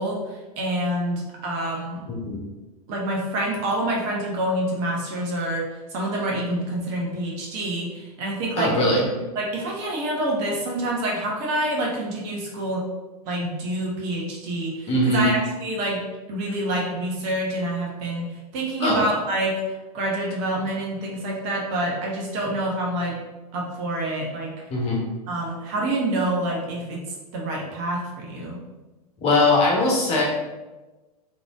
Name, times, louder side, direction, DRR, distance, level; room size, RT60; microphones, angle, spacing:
voice 1, 0.0-2.1 2.9-8.7 9.3-12.8 13.3-16.0 16.3-19.6 19.9-23.2 23.5-24.5 25.3-27.0 27.3-28.6, right 1 dB, 40° right, -2 dB, 1.2 m, -27 dB
voice 2, 2.1-2.4 8.6-9.0 14.9-15.3 18.8-19.0 24.7-25.0 29.2-30.2, left 2 dB, 30° left, -2 dB, 1.3 m, -20 dB
4.0 x 3.2 x 3.5 m, 1.1 s
figure-of-eight pair, 95°, 20 cm